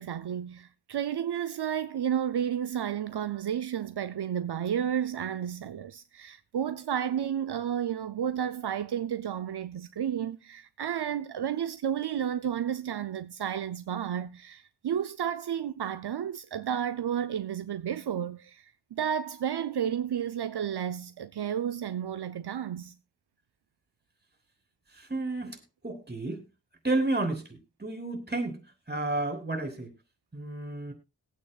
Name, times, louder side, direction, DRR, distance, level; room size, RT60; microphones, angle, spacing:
voice 1, 0.0-23.0, right 9 dB, 75° right, 0.6 m, -32 dB
voice 2, 24.9-26.4 26.8-28.6 28.9-29.9 30.3-30.9, right 2 dB, 25° right, 3.3 m, -31 dB
21.0 x 8.8 x 2.4 m
wide cardioid pair, 90°, 40 cm